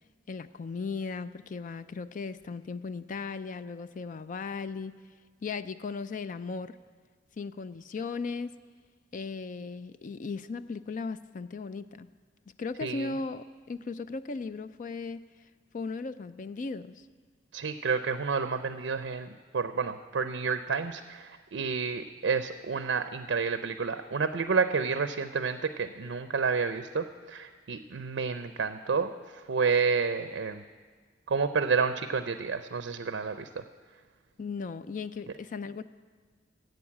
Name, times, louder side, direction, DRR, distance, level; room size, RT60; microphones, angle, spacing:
voice 1, 0.3-4.9 5.4-6.8 7.4-8.5 9.1-12.1 12.6-15.3 15.7-17.0 34.4-35.8, left 4 dB, 45° left, 13 dB, 0.4 m, -37 dB
voice 2, 17.5-30.6 31.3-33.6, right 5 dB, 75° right, 10 dB, 0.5 m, -30 dB
12.0 x 8.0 x 8.5 m, 1.5 s
head